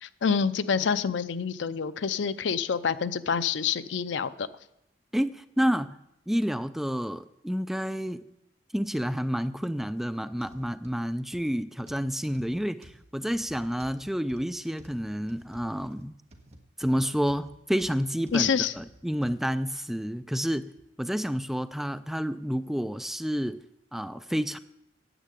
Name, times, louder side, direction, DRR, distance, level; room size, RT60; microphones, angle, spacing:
voice 1, 0.0-4.5 18.3-18.7, left 6 dB, 80° left, 14 dB, 0.5 m, -27 dB
voice 2, 5.1-6.0 6.3-8.2 8.7-16.1 16.8-20.7 21.0-23.6 23.9-24.6, equal, ahead, 11 dB, 0.3 m, -29 dB
sound 1, 10.3-19.4 20.0-20.1 20.8-20.9, right 1 dB, 35° right, 1.5 m, -53 dB
10.0 x 8.3 x 8.2 m, 0.82 s
head